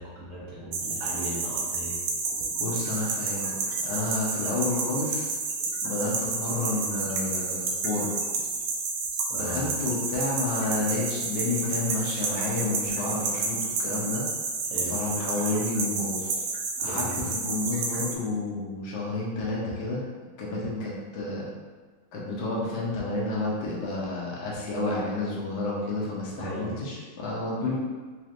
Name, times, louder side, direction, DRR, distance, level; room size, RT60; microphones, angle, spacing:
voice 1, 0.0-2.0 9.3-9.7 14.7-15.0 16.8-17.3 26.3-26.7, equal, 50° right, -7 dB, 1.1 m, -37 dB
sound 1, 0.7-18.1, right 4 dB, 80° right, 1.3 m, -30 dB
voice 2, 2.6-3.5 3.8-5.3 5.8-8.1 9.3-14.3 14.9-16.4 16.8-20.0 20.4-21.5 22.1-27.7, left 2 dB, 65° left, -5 dB, 1.2 m, -30 dB
4.1 x 3.0 x 2.5 m, 1.4 s
omnidirectional pair, 2.3 m